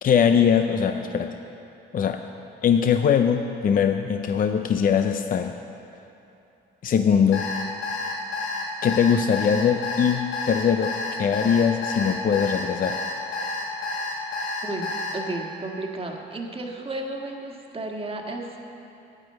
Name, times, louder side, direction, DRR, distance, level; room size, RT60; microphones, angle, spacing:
voice 1, 0.0-1.3 1.9-2.2 2.6-5.5 6.8-7.4 8.8-13.0, left 7 dB, 45° left, 7 dB, 0.5 m, -21 dB
Alarm, 7.3-15.1, left 3 dB, 75° left, 2.2 m, -30 dB
voice 2, 15.1-18.6, right 2 dB, 30° right, 1 dB, 1.6 m, -33 dB
9.9 x 9.4 x 7.6 m, 2.8 s
cardioid pair, 90°, 20 cm